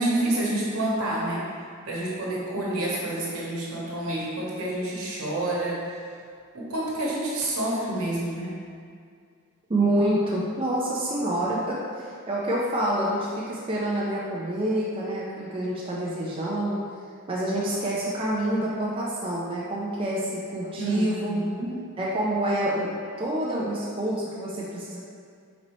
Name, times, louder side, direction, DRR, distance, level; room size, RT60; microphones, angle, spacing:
voice 1, 0.0-1.4 1.9-6.0 6.5-8.5 20.8-21.7, right 1 dB, 70° right, -6 dB, 1.1 m, -28 dB
voice 2, 9.7-16.8 17.3-21.4 22.0-22.9 23.2-25.0, right 1 dB, 25° right, -6 dB, 0.4 m, -27 dB
4.1 x 4.0 x 3.0 m, 2.2 s
head